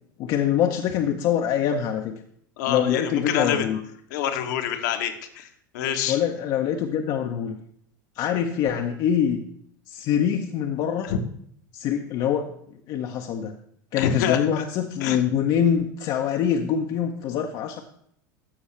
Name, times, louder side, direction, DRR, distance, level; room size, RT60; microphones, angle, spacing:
voice 1, 0.2-2.1 2.7-3.8 6.1-7.6 8.2-9.4 9.9-11.1 11.7-12.5 12.9-13.5 13.9-17.8, left 9 dB, 45° left, 3 dB, 0.7 m, -24 dB
voice 2, 2.6-3.7 4.1-5.5 5.7-6.2 11.1-11.2 14.0-14.5 15.0-15.2, left 9 dB, 60° left, 6 dB, 1.0 m, -26 dB
13.0 x 5.6 x 3.2 m, 0.67 s
figure-of-eight pair, 80°, 10 cm